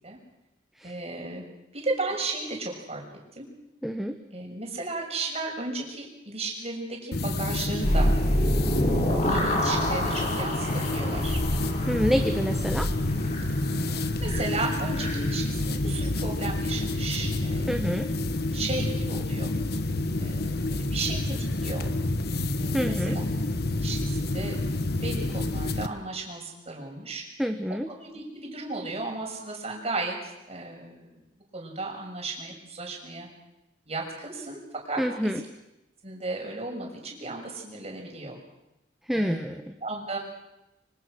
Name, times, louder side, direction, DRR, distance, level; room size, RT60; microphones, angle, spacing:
voice 1, 0.8-1.4 1.7-3.0 3.3-3.5 4.3-8.1 9.2-11.4 14.2-17.8 18.5-19.5 20.2-21.9 22.6-23.2 23.7-24.6 24.8-27.2 27.7-31.2 31.5-33.3 33.9-35.3 36.0-38.4 39.1-40.2, right 3 dB, 35° right, 1 dB, 6.5 m, -35 dB
voice 2, 3.8-4.2 11.9-12.9 17.7-18.1 22.7-23.2 27.4-27.9 35.0-35.4 39.1-39.7, equal, ahead, 5 dB, 1.2 m, -27 dB
sound 1, 7.1-25.9, left 2 dB, 60° left, 1.3 m, -29 dB
sound 2, 7.8-15.3, equal, 40° left, 6.4 m, -28 dB
25.5 x 24.5 x 6.4 m, 0.92 s
head